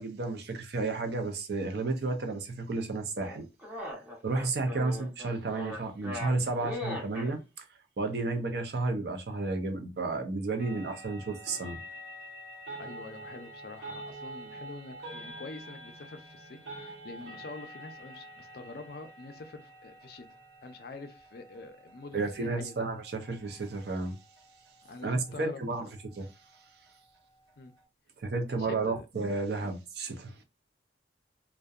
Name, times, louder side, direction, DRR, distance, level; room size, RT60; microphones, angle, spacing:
voice 1, 0.0-3.5 3.9-7.7 8.0-11.8 22.1-24.2 25.0-25.9 26.2-26.3 28.2-30.3, right 3 dB, 60° right, 0.5 m, -32 dB
sound 1, 3.2-7.3, left 1 dB, 10° right, 0.7 m, -39 dB
sound 2, 10.6-27.8, right 1 dB, 75° right, 1.0 m, -48 dB
voice 2, 12.8-20.3 20.6-22.8 24.8-25.7 27.6-27.7 28.5-29.1 29.6-29.7, left 3 dB, 55° left, 0.4 m, -46 dB
2.6 x 2.1 x 2.3 m
head